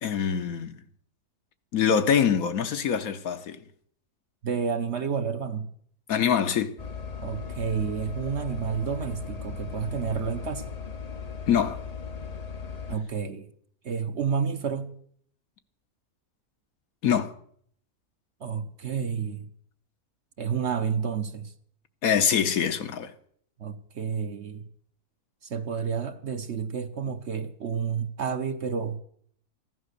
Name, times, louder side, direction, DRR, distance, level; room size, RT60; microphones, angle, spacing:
voice 1, 0.0-0.8 1.7-3.6 6.1-6.8 11.5-11.8 17.0-17.3 22.0-23.1, left 7 dB, 70° left, 1.3 m, -24 dB
voice 2, 4.4-5.7 7.2-10.6 12.9-13.5 13.8-14.9 18.4-19.5 20.4-21.5 23.6-24.7 25.4-29.0, right 6 dB, 50° right, 1.1 m, -30 dB
sound 1, 6.8-13.0, left 6 dB, 40° left, 0.6 m, -37 dB
15.0 x 11.0 x 6.6 m
omnidirectional pair, 1.6 m